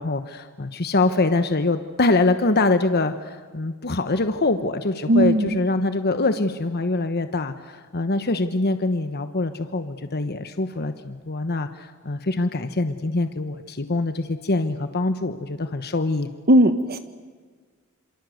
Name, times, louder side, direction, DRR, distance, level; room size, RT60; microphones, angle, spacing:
voice 1, 0.0-16.3, left 2 dB, 50° left, 9 dB, 1.2 m, -24 dB
voice 2, 5.1-5.6 16.5-17.0, right 1 dB, 45° right, 9 dB, 1.2 m, -17 dB
27.5 x 27.0 x 7.9 m, 1.5 s
head